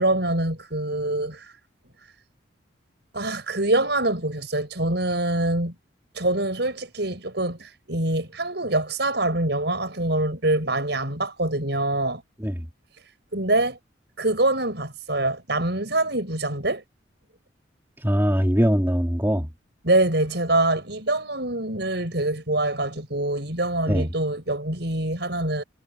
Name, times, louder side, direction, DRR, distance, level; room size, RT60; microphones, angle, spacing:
voice 1, 0.0-1.5 3.1-5.7 6.1-12.2 13.3-13.8 14.2-16.8 19.8-25.6, right 2 dB, 60° right, 7.3 m, -25 dB
voice 2, 18.0-19.5 23.9-24.1, equal, 10° right, 3.2 m, -22 dB
head